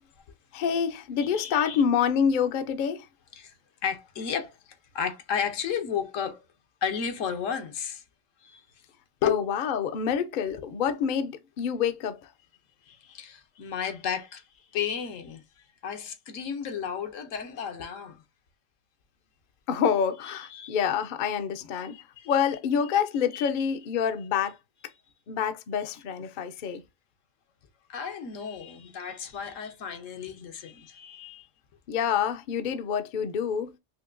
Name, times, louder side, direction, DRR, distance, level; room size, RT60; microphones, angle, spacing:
voice 1, 0.5-3.0 9.2-12.2 19.7-22.0 22.3-24.6 25.3-26.8 31.9-33.7, left 7 dB, 60° left, 0.5 m, -27 dB
voice 2, 1.2-1.8 3.3-3.5 3.8-4.6 4.9-6.4 6.8-8.0 8.4-8.6 9.2-9.4 10.5-10.6 12.9-14.4 14.7-15.4 15.8-18.2 20.2-20.8 21.8-22.3 23.3-23.5 27.9-31.5, left 7 dB, 80° left, 1.1 m, -33 dB
5.4 x 2.2 x 2.4 m
omnidirectional pair, 1.3 m